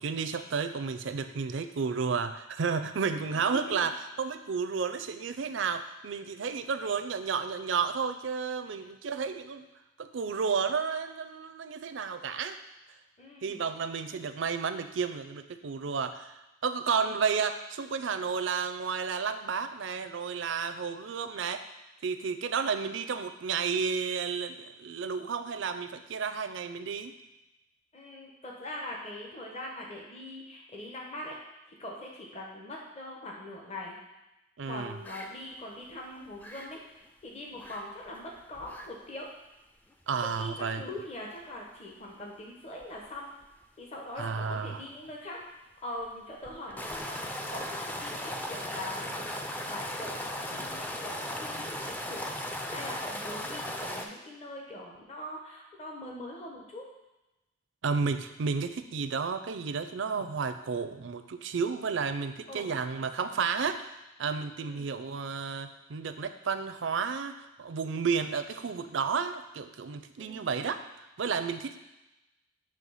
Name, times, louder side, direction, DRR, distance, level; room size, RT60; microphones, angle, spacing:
voice 1, 0.0-9.7 10.0-12.6 13.4-16.3 16.6-21.6 22.0-27.1 34.6-34.9 40.1-40.8 44.2-44.8 57.8-63.9 64.2-71.8, right 5 dB, 70° right, 9 dB, 0.4 m, -32 dB
voice 2, 3.1-3.9 8.8-8.9 13.2-13.6 16.9-17.1 27.9-31.4 31.7-34.0 34.6-36.8 37.2-39.3 40.4-43.3 43.8-45.4 45.8-47.2 47.5-49.3 49.7-50.2 50.5-52.2 52.7-56.9 62.5-62.7 64.6-64.9 70.2-70.5, left 1 dB, 35° left, -1 dB, 0.9 m, -42 dB
sound 1, 35.0-35.3 35.6-35.8 36.2-36.7 37.5-37.8 38.1-38.2 38.5-38.9 39.2-39.3 39.9-40.0 42.8-43.1 43.4-43.5 46.4-54.0, left 1 dB, 10° left, 0.4 m, -37 dB
7.6 x 3.2 x 5.6 m, 0.99 s
head